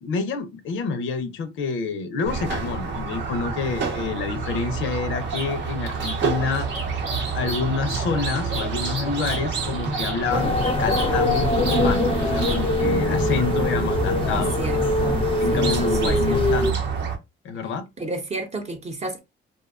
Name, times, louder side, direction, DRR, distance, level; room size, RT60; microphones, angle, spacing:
voice 1, 0.0-6.7 7.3-14.6 15.4-16.8 17.4-17.8, left 4 dB, 75° left, 0.5 m, -28 dB
Squeak, 2.2-17.2, right 4 dB, 65° right, 0.7 m, -29 dB
Bird vocalization bird call bird song, 4.4-12.9, right 3 dB, 80° right, 1.0 m, -37 dB
sound 1, 10.3-16.7, left 2 dB, 25° left, 0.5 m, -22 dB
voice 2, 14.3-15.2 15.5-16.6 18.0-19.2, right 2 dB, 35° right, 0.7 m, -31 dB
2.6 x 2.2 x 2.3 m
cardioid pair, 90°, 20 cm